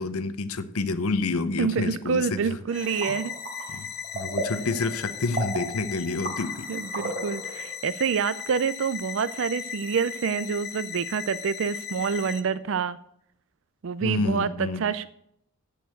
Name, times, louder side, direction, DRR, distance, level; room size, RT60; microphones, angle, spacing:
voice 1, 0.0-2.6 2.9-3.2 3.7-3.9 4.1-6.7 14.0-14.8, left 3 dB, 80° left, 12 dB, 0.8 m, -28 dB
voice 2, 1.6-3.3 6.7-13.0 13.8-15.1, right 6 dB, 60° right, 15 dB, 0.4 m, -27 dB
sound 1, 2.7-12.4, left 8 dB, 45° left, 0.8 m, -37 dB
sound 2, 2.7-7.7, right 1 dB, 30° right, 3.4 m, -36 dB
8.3 x 6.9 x 7.7 m, 0.73 s
head